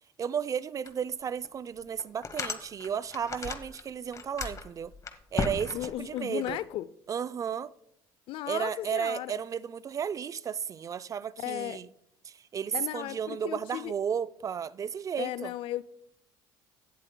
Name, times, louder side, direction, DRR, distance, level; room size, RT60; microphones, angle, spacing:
voice 1, 0.2-4.9 5.3-6.6 7.1-7.7 8.5-11.9 12.2-15.5, right 7 dB, 35° right, 0.4 m, -33 dB
sound 1, 0.8-0.9 1.4-1.5 2.0-3.8 4.1-6.5, left 4 dB, 35° left, 0.9 m, -35 dB
voice 2, 5.7-6.9 8.3-9.3 11.4-11.8 12.7-13.9 15.2-15.8, left 14 dB, 65° left, 0.4 m, -35 dB
17.0 x 7.4 x 2.2 m
supercardioid pair, 85°, 10 cm